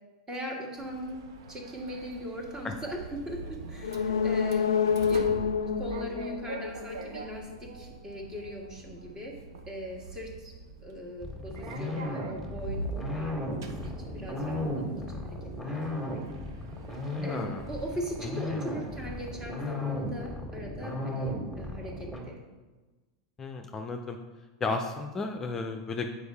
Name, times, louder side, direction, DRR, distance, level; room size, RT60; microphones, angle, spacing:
voice 1, 0.3-1.2 1.5-4.7 5.1-5.3 5.8-9.4 9.7-10.5 10.8-15.4 15.7-16.3 17.2-22.4, equal, 25° right, 0 dB, 1.8 m, -40 dB
Sliding door, 0.8-20.4, right 3 dB, 70° right, 0.7 m, -44 dB
sound 1, 3.8-7.5 7.8-7.9, left 7 dB, 80° left, 0.4 m, -28 dB
sound 2, 11.2-22.2, left 1 dB, ahead, 1.8 m, -35 dB
voice 2, 17.1-17.6 18.2-18.6 23.4-24.2 24.6-26.1, left 3 dB, 25° left, 4 dB, 0.5 m, -34 dB
7.8 x 4.9 x 3.5 m, 1.2 s
hypercardioid pair, 90°, 2 cm